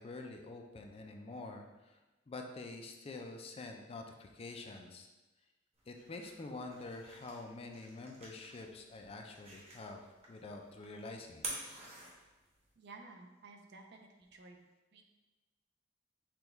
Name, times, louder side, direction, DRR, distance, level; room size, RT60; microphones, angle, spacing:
voice 1, 0.0-2.0 2.3-5.1 5.9-11.5, left 3 dB, 30° left, 3 dB, 0.4 m, -47 dB
sound 1, 5.7-12.7, right 2 dB, 35° right, 1.0 m, -50 dB
voice 2, 12.8-14.6 14.9-15.0, right 3 dB, 60° right, 3 dB, 0.5 m, -54 dB
6.0 x 2.3 x 3.4 m, 1.1 s
head